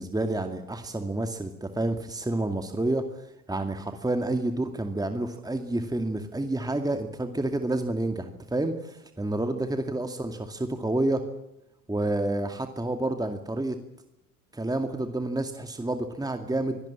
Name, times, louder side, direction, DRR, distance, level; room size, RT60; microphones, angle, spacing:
voice 1, 0.0-11.2 11.9-13.8 14.5-16.8, right 2 dB, 10° right, 6 dB, 2.3 m, -29 dB
26.0 x 18.0 x 8.7 m, 0.84 s
hypercardioid pair, 65°, 45 cm